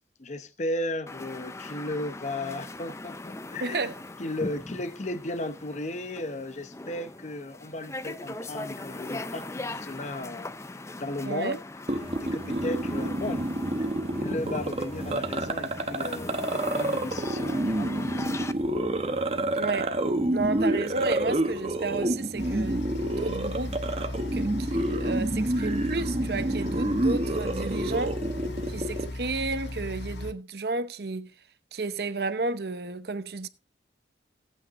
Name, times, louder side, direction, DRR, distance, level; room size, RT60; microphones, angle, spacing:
voice 1, 0.2-3.9 4.2-11.6 12.2-13.5 13.8-18.5 28.4-28.6, left 1 dB, 40° left, 0.8 m, -35 dB
sound 1, 1.1-18.5, left 2 dB, 15° left, 0.5 m, -40 dB
voice 2, 3.6-3.9 11.2-11.5 19.5-20.0 20.3-23.8 24.3-28.2 28.7-31.3 31.7-33.5, right 3 dB, 60° right, 0.8 m, -32 dB
sound 2, 11.9-29.1, right 1 dB, 35° right, 1.0 m, -29 dB
sound 3, 22.4-30.3, left 1 dB, 80° left, 1.0 m, -36 dB
18.0 x 8.5 x 2.6 m
head